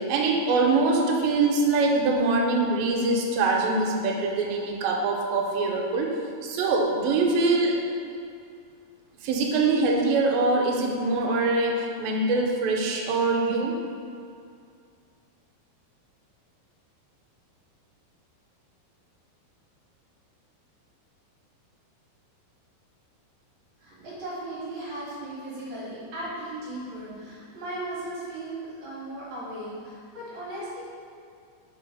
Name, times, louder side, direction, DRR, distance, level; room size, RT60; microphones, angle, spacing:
voice 1, 0.0-6.2 6.4-7.7 9.2-13.7, right 3 dB, 80° right, 0 dB, 2.3 m, -23 dB
voice 2, 23.8-30.8, right 1 dB, 65° right, -8 dB, 2.1 m, -37 dB
5.2 x 3.8 x 4.7 m, 2.3 s
omnidirectional pair, 4.4 m